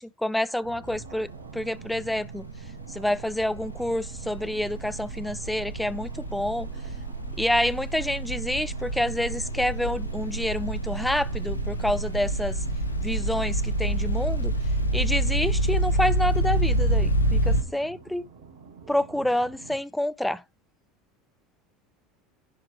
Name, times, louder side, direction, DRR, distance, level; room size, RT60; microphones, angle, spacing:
voice 1, 0.0-2.5 2.9-6.7 7.4-12.6 13.0-14.5 14.9-18.3 18.9-20.4, left 1 dB, 5° left, 0.8 m, -28 dB
sound 1, 0.6-19.8, right 5 dB, 70° right, 4.1 m, -45 dB
sound 2, 0.9-1.2 1.5-17.6, right 1 dB, 85° left, 1.4 m, -27 dB
11.0 x 4.9 x 6.0 m
figure-of-eight pair, 70°, 0 cm